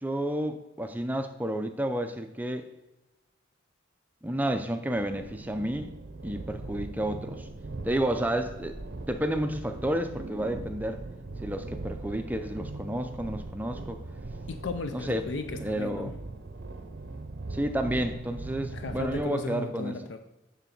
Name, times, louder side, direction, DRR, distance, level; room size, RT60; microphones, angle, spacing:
voice 1, 0.0-2.6 4.2-5.9 6.2-7.5 7.8-8.8 9.1-11.0 11.4-14.0 14.9-15.2 15.6-16.2 17.5-20.0, right 1 dB, 10° right, 7 dB, 0.4 m, -31 dB
sound 1, 4.9-19.2, right 2 dB, 60° right, 0.6 m, -40 dB
voice 2, 14.5-16.1 18.7-20.2, left 3 dB, 65° left, 8 dB, 0.5 m, -36 dB
9.3 x 3.9 x 5.9 m, 1.0 s
head